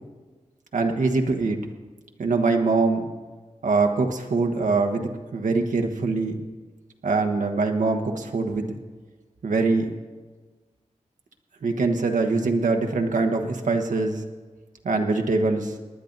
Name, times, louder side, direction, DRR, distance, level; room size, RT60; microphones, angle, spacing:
voice 1, 0.7-1.6 2.2-3.1 3.6-6.4 7.0-8.8 9.4-9.9 11.6-14.2 14.8-15.7, right 3 dB, 85° right, 4 dB, 1.3 m, -23 dB
19.5 x 10.5 x 4.0 m, 1.3 s
wide cardioid pair, 70°, 13 cm